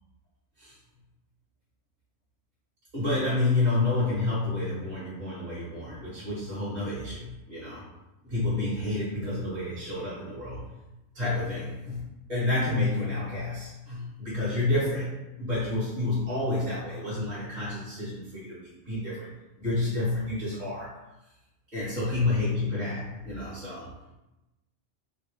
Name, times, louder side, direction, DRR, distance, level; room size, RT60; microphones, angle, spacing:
voice 1, 2.9-7.8 8.2-10.6 11.1-19.3 19.6-20.9 21.7-23.9, left 2 dB, 35° right, -12 dB, 1.5 m, -29 dB
3.1 x 2.6 x 3.3 m, 0.98 s
omnidirectional pair, 1.3 m